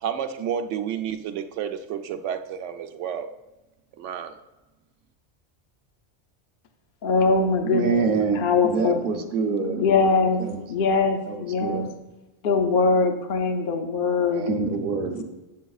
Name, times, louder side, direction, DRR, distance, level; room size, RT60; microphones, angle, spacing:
voice 1, 0.0-3.3 4.0-4.4, right 8 dB, 90° right, 8 dB, 0.9 m, -30 dB
voice 2, 7.0-8.1 8.3-9.0 9.8-10.4 10.7-11.8 12.4-14.5, left 4 dB, 55° left, 5 dB, 0.8 m, -22 dB
voice 3, 7.6-9.8 10.4-10.6 11.3-11.9 14.2-15.2, right 5 dB, 50° right, 3 dB, 0.9 m, -26 dB
8.4 x 8.0 x 2.3 m, 1.1 s
omnidirectional pair, 1.2 m